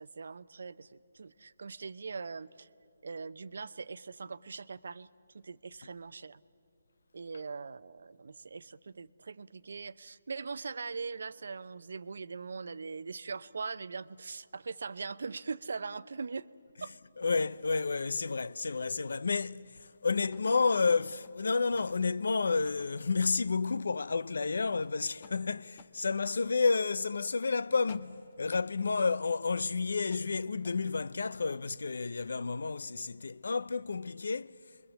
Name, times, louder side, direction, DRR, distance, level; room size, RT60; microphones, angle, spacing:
voice 1, 0.0-2.7 3.0-5.1 5.3-6.4 7.1-16.5 16.8-16.9, right 4 dB, 70° right, 0.6 m, -41 dB
voice 2, 17.2-34.6, left 4 dB, 75° left, 0.5 m, -30 dB
sound 1, 20.2-22.1 22.6-23.9 24.3-26.0 26.6-26.8 27.2-28.7 30.1-30.9 31.2-31.3, left 6 dB, 40° left, 1.6 m, -57 dB
29.5 x 22.5 x 7.3 m
hypercardioid pair, 160°, 0 cm